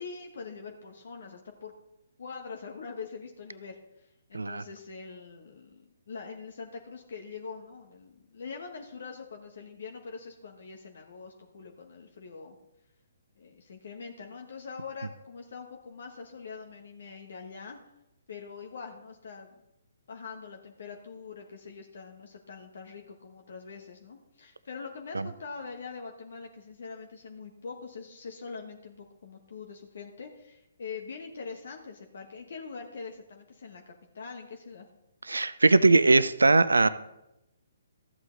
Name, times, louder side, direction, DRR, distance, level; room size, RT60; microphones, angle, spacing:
voice 1, 0.0-1.7 2.2-12.6 13.4-17.8 18.3-19.5 20.1-34.9, left 5 dB, 65° left, 2 dB, 1.2 m, -43 dB
voice 2, 35.3-36.9, right 3 dB, 85° right, 15 dB, 0.4 m, -20 dB
13.5 x 8.0 x 3.9 m, 0.90 s
figure-of-eight pair, 135°, 0 cm